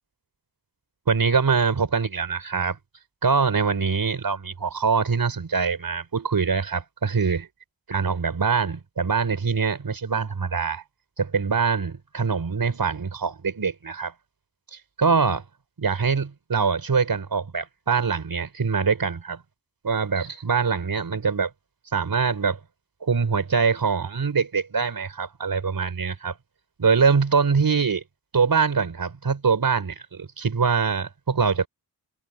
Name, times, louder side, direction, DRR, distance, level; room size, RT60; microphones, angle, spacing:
voice 1, 1.1-2.8 3.2-7.5 7.9-10.8 11.2-14.1 14.7-15.4 15.8-19.4 19.8-21.5 21.9-22.6 23.0-26.4 26.8-28.0 28.3-31.7, right 5 dB, 55° right, 4.8 m, -23 dB
wide cardioid pair, 125°, 42 cm